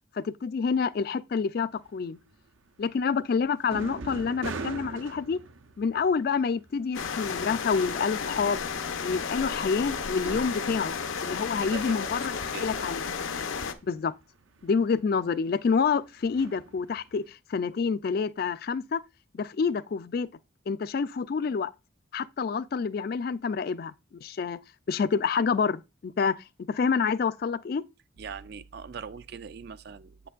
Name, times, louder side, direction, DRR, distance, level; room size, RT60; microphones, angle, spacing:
voice 1, 0.1-2.2 2.8-5.4 5.8-8.7 9.0-10.9 11.2-13.0 13.8-14.1 14.6-19.0 19.3-20.3 20.7-21.7 22.1-23.9 24.2-24.6 24.9-27.8, left 5 dB, 50° left, 0.3 m, -28 dB
sound 1, 1.8-8.0 8.3-17.3, right 3 dB, 80° right, 0.7 m, -43 dB
sound 2, 6.9-13.7, left 6 dB, 80° left, 0.7 m, -33 dB
voice 2, 11.6-12.3 12.5-13.0 28.2-30.3, right 6 dB, 50° right, 0.4 m, -41 dB
8.1 x 6.8 x 2.4 m
head